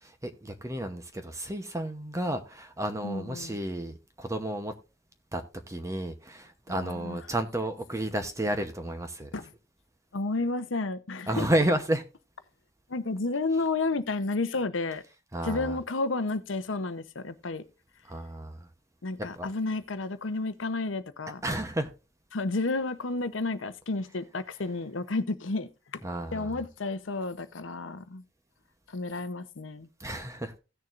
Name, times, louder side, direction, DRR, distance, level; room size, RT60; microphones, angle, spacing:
voice 1, 0.0-4.7 5.3-9.3 11.3-12.0 15.3-15.8 18.1-18.7 19.4-19.5 21.4-21.9 26.0-26.6 30.0-30.6, right 1 dB, 15° right, 0.8 m, -31 dB
voice 2, 3.0-3.6 6.7-7.2 9.3-9.5 10.1-11.5 12.9-15.0 15.4-17.6 19.0-21.4 22.3-26.0 26.3-28.2 28.9-29.9, left 3 dB, 90° left, 0.8 m, -31 dB
17.0 x 6.8 x 2.5 m
head